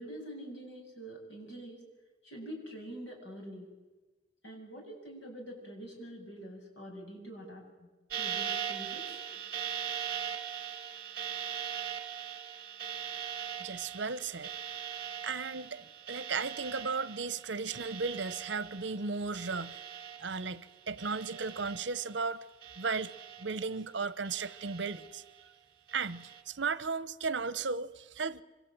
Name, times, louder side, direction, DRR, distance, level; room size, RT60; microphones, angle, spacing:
voice 1, 0.0-1.8 2.2-3.7 4.4-7.9 8.1-9.0, right 1 dB, 80° left, 8.0 m, -45 dB
sound 1, 8.1-20.7 21.0-22.2 22.6-23.8 24.2-25.3 25.9-26.4, right 8 dB, 50° right, 2.5 m, -41 dB
voice 2, 13.6-14.5 15.2-19.8 20.2-22.4 22.8-23.1 23.4-25.2 25.9-28.4, right 4 dB, 80° right, 0.9 m, -35 dB
25.5 x 25.5 x 8.9 m
head